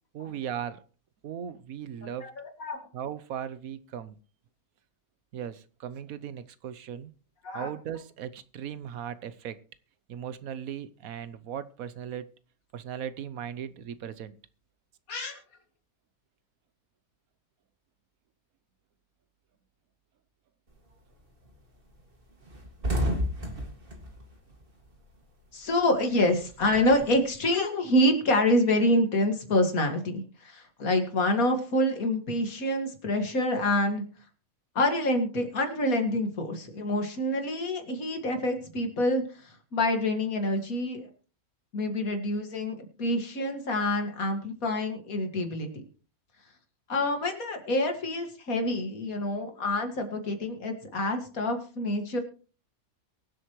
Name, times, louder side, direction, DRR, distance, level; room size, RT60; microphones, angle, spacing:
voice 1, 0.1-0.8 1.2-2.3 2.9-4.2 5.3-7.1 7.5-9.6 10.1-12.3 12.7-14.3, right 9 dB, 75° right, 14 dB, 1.2 m, -37 dB
voice 2, 15.1-15.4 25.5-34.0 34.8-41.1 41.7-45.8 46.9-52.2, left 1 dB, 70° left, 5 dB, 2.4 m, -27 dB
sound 1, 20.7-21.1 21.4-21.6 21.9-22.0 22.3-25.3 25.6-27.3, equal, 40° right, 2.2 m, -32 dB
23.0 x 7.9 x 3.1 m, 0.38 s
omnidirectional pair, 1.5 m